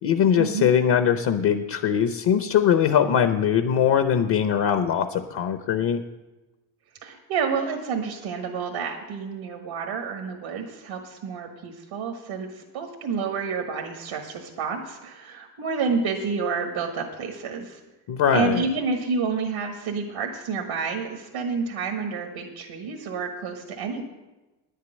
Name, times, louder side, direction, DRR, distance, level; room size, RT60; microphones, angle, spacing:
voice 1, 0.0-6.0 18.1-18.6, left 8 dB, 60° left, 8 dB, 0.8 m, -21 dB
voice 2, 7.0-17.8 18.3-24.1, right 5 dB, 85° right, 2 dB, 1.6 m, -29 dB
10.0 x 6.6 x 9.0 m, 1.1 s
cardioid pair, 125°, 46 cm